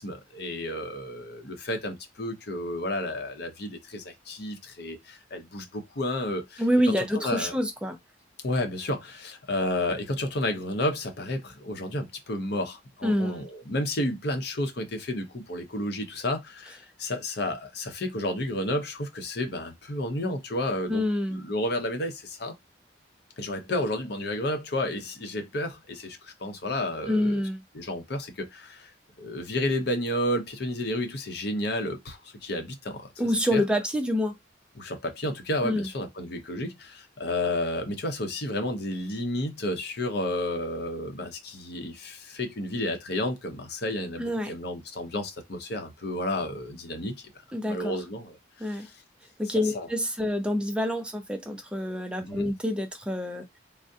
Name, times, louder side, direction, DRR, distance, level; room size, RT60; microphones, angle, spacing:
voice 1, 0.0-6.6 7.0-7.5 8.4-21.0 21.3-22.5 23.4-27.4 27.7-28.9 29.2-33.1 33.5-33.6 34.8-47.3 47.7-48.9 49.7-49.9 52.3-52.5, left 1 dB, 60° left, 0.7 m, -31 dB
voice 2, 6.6-8.0 13.0-13.5 20.9-21.5 27.1-27.6 33.2-34.3 35.6-35.9 44.2-44.5 47.5-47.9 48.6-48.9 49.4-53.4, left 1 dB, 5° right, 0.4 m, -27 dB
3.5 x 2.0 x 2.6 m
head